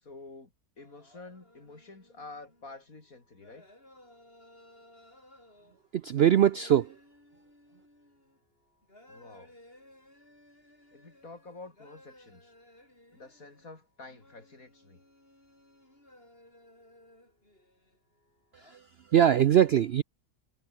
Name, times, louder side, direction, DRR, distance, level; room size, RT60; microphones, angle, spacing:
voice 1, 0.0-3.7 9.1-9.6 10.9-12.5 13.1-15.0, left 3 dB, 65° left, 4.5 m, -49 dB
sound 1, 0.8-18.8, left 1 dB, 40° left, 8.4 m, -59 dB
voice 2, 5.9-6.9 18.6-18.8 19.1-20.0, right 10 dB, 65° right, 0.6 m, -22 dB
omnidirectional pair, 1.6 m